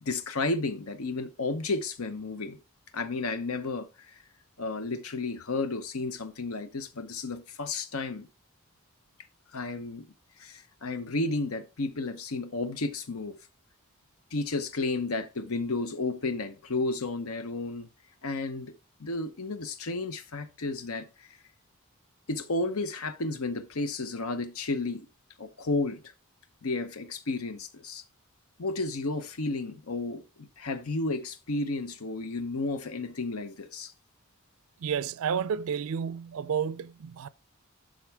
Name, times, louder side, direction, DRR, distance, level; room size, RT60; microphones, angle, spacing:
voice 1, 0.0-2.6 2.9-4.2 4.6-8.3 9.5-10.1 10.4-13.4 14.3-17.9 18.2-18.7 19.0-21.3 22.3-25.1 25.4-26.1 26.6-28.0 28.6-33.9, left 3 dB, 80° left, 0.8 m, -32 dB
voice 2, 34.8-37.3, right 7 dB, 75° right, 0.4 m, -31 dB
11.5 x 3.9 x 3.4 m
head